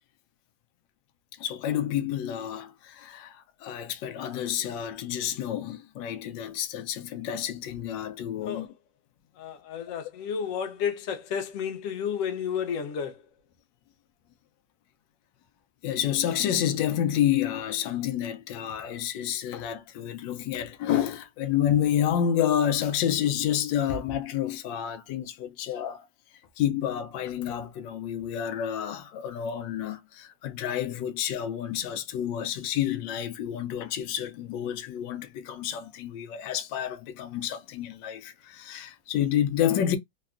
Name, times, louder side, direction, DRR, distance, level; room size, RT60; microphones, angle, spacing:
voice 1, 1.4-8.7 15.8-26.1 26.6-40.0, left 10 dB, 85° left, 1.3 m, -29 dB
voice 2, 8.4-8.7 9.3-13.3, left 7 dB, 60° left, 0.9 m, -32 dB
3.3 x 2.2 x 2.4 m
omnidirectional pair, 1.9 m